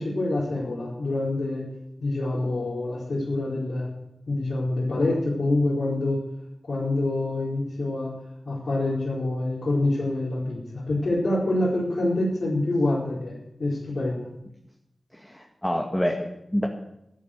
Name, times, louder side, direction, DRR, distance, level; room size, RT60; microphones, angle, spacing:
voice 1, 0.0-1.6 2.0-3.9 4.3-6.2 6.6-8.1 8.5-14.3, left 2 dB, 65° left, -7 dB, 4.5 m, -26 dB
voice 2, 15.1-16.7, equal, 10° left, 1 dB, 1.8 m, -27 dB
12.5 x 11.0 x 7.9 m, 0.82 s
wide cardioid pair, 70°, 0 cm